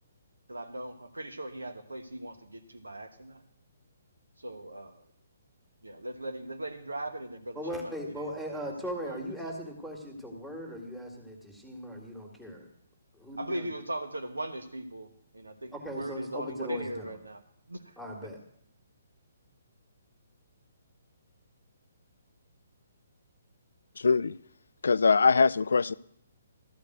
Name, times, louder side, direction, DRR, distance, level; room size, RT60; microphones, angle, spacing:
voice 1, 0.5-3.4 4.4-5.0 5.8-7.9 8.2-8.3 8.6-8.7 9.0-9.1 13.4-17.4 17.7-17.9, right 1 dB, 80° right, 6 dB, 1.2 m, -39 dB
voice 2, 7.5-12.7 13.1-13.7 15.7-17.2 18.0-18.4, equal, 5° right, 0 dB, 2.0 m, -39 dB
voice 3, 24.0-24.3 24.8-25.9, left 4 dB, 65° left, 19 dB, 0.4 m, -22 dB
13.5 x 5.1 x 7.9 m, 0.69 s
figure-of-eight pair, 130°, 0 cm